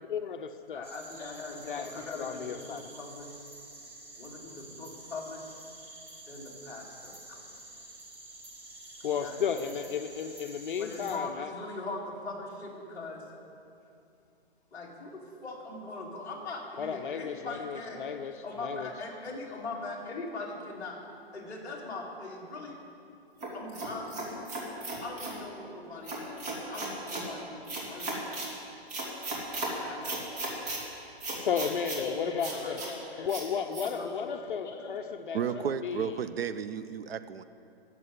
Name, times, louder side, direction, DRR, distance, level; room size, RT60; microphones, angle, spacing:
voice 1, 0.0-0.9 1.7-2.9 9.0-11.5 16.8-18.9 31.4-32.8 33.2-36.1, left 7 dB, 55° left, 0.6 m, -34 dB
voice 2, 0.7-3.4 4.2-5.5 6.3-7.5 9.0-9.7 10.0-10.1 10.5-13.2 14.7-22.8 23.5-24.5 25.0-28.3 29.7-30.7 32.0-33.3 33.6-35.2 35.5-35.6, left 3 dB, 10° left, 2.1 m, -41 dB
sound 1, 0.8-11.2, right 2 dB, 20° right, 1.2 m, -49 dB
sound 2, 23.4-25.4 26.0-27.3 27.7-28.5 28.9-29.7 30.0-30.8 31.2-32.0 32.4-32.9 33.3-33.4 33.7-33.9, right 2 dB, 40° right, 3.1 m, -36 dB
voice 3, 35.3-37.4, right 7 dB, 65° right, 0.7 m, -33 dB
13.5 x 7.8 x 9.5 m
hypercardioid pair, 165°, 32 cm